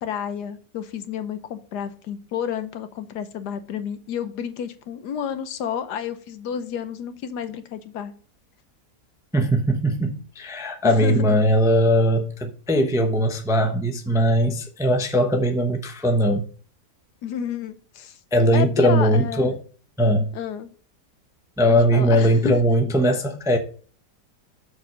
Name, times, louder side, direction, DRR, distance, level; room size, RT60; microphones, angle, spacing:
voice 1, 0.0-8.1 10.8-11.4 17.2-18.2 18.5-19.5 20.3-20.7 21.7-22.6, left 8 dB, 85° left, 1.4 m, -30 dB
voice 2, 9.3-16.5 18.3-19.6 20.0-20.3 21.6-23.6, equal, 5° right, 0.5 m, -20 dB
6.8 x 4.6 x 6.1 m
omnidirectional pair, 1.7 m